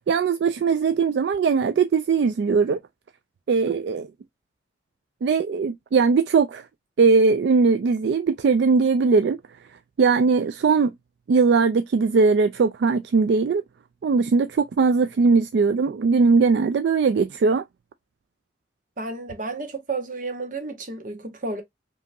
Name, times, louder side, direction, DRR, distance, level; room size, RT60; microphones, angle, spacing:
voice 1, 0.1-2.8 3.5-4.1 5.2-6.6 7.0-9.4 10.0-10.9 11.3-13.6 14.0-17.6, right 4 dB, 65° right, 0.3 m, -20 dB
voice 2, 19.0-21.6, right 3 dB, 45° right, 1.0 m, -31 dB
5.1 x 2.8 x 2.5 m
head